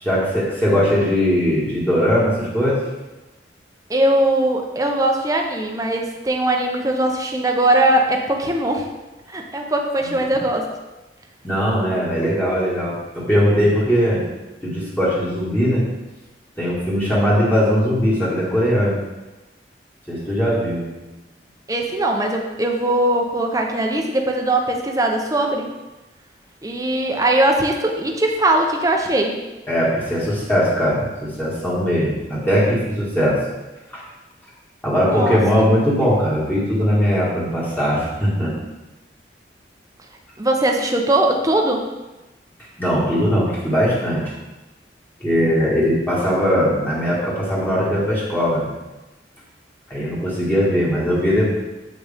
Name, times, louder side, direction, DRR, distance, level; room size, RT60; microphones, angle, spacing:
voice 1, 0.0-2.8 10.2-10.4 11.4-14.2 14.6-15.8 16.6-18.9 20.1-20.8 29.7-33.4 33.9-34.0 34.8-38.5 42.8-44.2 45.2-48.7 49.9-51.5, equal, 10° left, -8 dB, 1.8 m, -19 dB
voice 2, 3.9-8.8 9.3-10.7 21.7-25.7 26.6-29.4 35.0-35.7 40.4-41.8, right 1 dB, 20° right, 2 dB, 0.8 m, -20 dB
7.9 x 6.3 x 3.6 m, 1.1 s
head